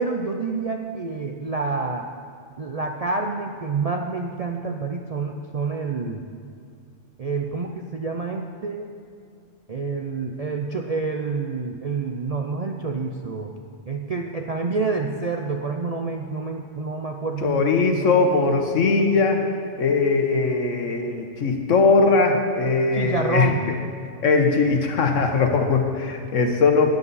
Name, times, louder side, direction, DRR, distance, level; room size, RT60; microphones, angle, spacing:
voice 1, 0.0-2.1 2.6-6.2 7.2-8.9 9.7-13.5 13.9-18.2 22.9-23.6, right 4 dB, 45° right, 2 dB, 0.5 m, -28 dB
voice 2, 17.4-19.4 19.8-23.5 24.2-26.9, left 4 dB, 75° left, 4 dB, 1.4 m, -20 dB
13.0 x 10.5 x 4.1 m, 2.3 s
omnidirectional pair, 1.3 m